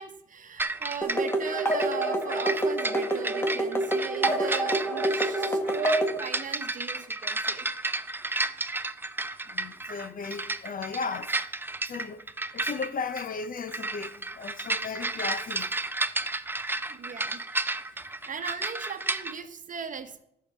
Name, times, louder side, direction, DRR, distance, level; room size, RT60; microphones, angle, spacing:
voice 1, 0.0-7.7 16.9-17.4 17.9-20.2, right 7 dB, 40° right, 1.1 m, -38 dB
sound 1, 0.6-19.3, right 2 dB, 10° right, 0.5 m, -32 dB
sound 2, 1.0-6.2, right 1 dB, 10° left, 1.8 m, -27 dB
voice 2, 9.5-11.3 11.9-12.3 12.5-15.7 18.2-18.3, left 5 dB, 45° left, 0.8 m, -36 dB
12.5 x 4.8 x 7.1 m
cardioid pair, 100°, 20 cm